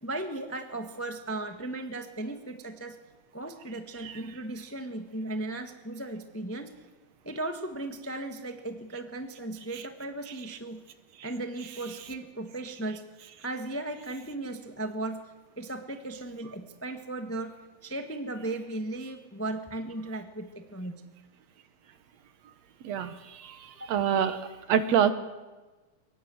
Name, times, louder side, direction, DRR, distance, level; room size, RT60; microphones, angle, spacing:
voice 1, 0.0-2.9 3.3-6.7 7.2-10.8 11.2-13.0 13.4-15.2 15.6-17.5 17.8-21.0 23.7-23.9, right 2 dB, 10° left, 6 dB, 0.8 m, -36 dB
voice 2, 23.9-24.4 24.7-25.1, right 8 dB, 65° right, 11 dB, 2.2 m, -24 dB
23.5 x 20.0 x 7.9 m, 1.2 s
omnidirectional pair, 3.4 m